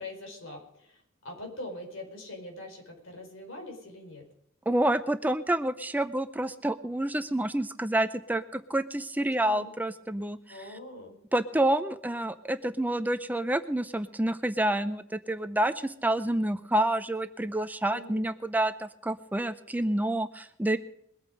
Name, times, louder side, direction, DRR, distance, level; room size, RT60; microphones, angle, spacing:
voice 1, 0.0-4.3 9.4-9.7 10.5-11.2 17.9-18.2, left 2 dB, 65° left, 2 dB, 4.8 m, -43 dB
voice 2, 4.7-10.6 11.3-20.8, right 1 dB, 10° right, 11 dB, 0.5 m, -28 dB
22.0 x 8.8 x 5.2 m, 0.76 s
head